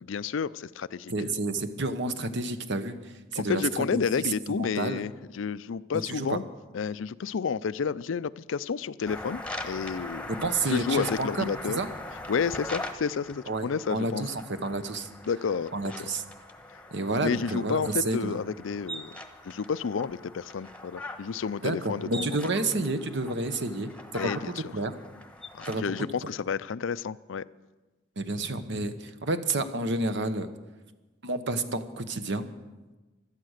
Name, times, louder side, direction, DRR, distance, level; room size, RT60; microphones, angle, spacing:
voice 1, 0.0-1.1 3.4-6.4 6.7-10.3 10.7-11.8 12.3-14.2 15.3-15.7 16.7-16.8 17.2-19.2 19.4-22.4 24.1-24.7 25.5-27.4, left 6 dB, 70° left, 17 dB, 0.4 m, -30 dB
voice 2, 1.1-3.6 3.9-4.3 4.6-5.0 6.1-6.4 10.4-11.5 11.8-11.9 13.5-14.3 14.6-15.1 15.7-16.2 16.9-18.4 21.6-24.3 24.6-24.9 25.6-25.9 28.2-30.5 31.2-32.5, right 2 dB, 65° right, 10 dB, 1.1 m, -30 dB
sound 1, 9.1-26.1, left 1 dB, 5° left, 1.1 m, -42 dB
17.0 x 12.5 x 6.6 m, 1.2 s
head